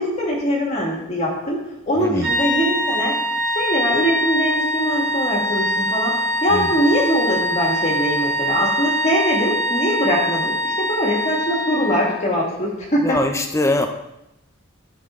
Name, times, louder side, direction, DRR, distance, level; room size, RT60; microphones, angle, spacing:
voice 1, 0.0-3.2 3.6-13.2 13.8-13.9, equal, 30° left, -2 dB, 1.9 m, -22 dB
voice 2, 2.0-2.3 6.5-6.7 13.0-13.9, left 2 dB, 15° left, 6 dB, 0.6 m, -22 dB
sound 1, 2.2-12.2, equal, 80° right, 3.5 m, -23 dB
13.5 x 5.9 x 3.7 m, 0.89 s
head